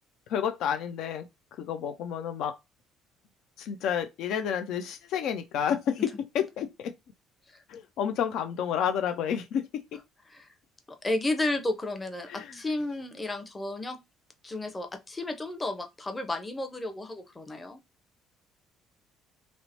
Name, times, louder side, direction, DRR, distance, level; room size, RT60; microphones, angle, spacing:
voice 1, 0.3-1.2 1.6-2.5 3.6-6.0 6.3-6.9 7.7-9.6 12.3-12.5, left 8 dB, 70° left, 0.3 m, -30 dB
voice 2, 10.9-14.0 14.4-17.8, left 2 dB, 20° left, 0.7 m, -32 dB
2.8 x 2.0 x 2.8 m
hypercardioid pair, 60°, 0 cm